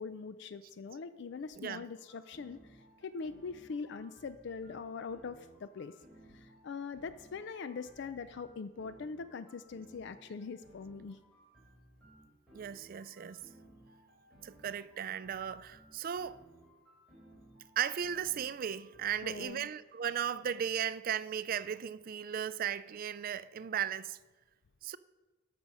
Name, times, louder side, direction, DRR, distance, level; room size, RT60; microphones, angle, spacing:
voice 1, 0.0-6.0 6.3-11.2 19.2-19.7, left 5 dB, 60° left, 0.4 m, -42 dB
voice 2, 1.6-1.9 12.5-13.5 14.4-16.4 17.8-24.2 24.8-25.0, right 8 dB, 45° right, 0.4 m, -36 dB
sound 1, 2.0-19.4, right 1 dB, ahead, 4.1 m, -60 dB
13.0 x 6.2 x 5.4 m
head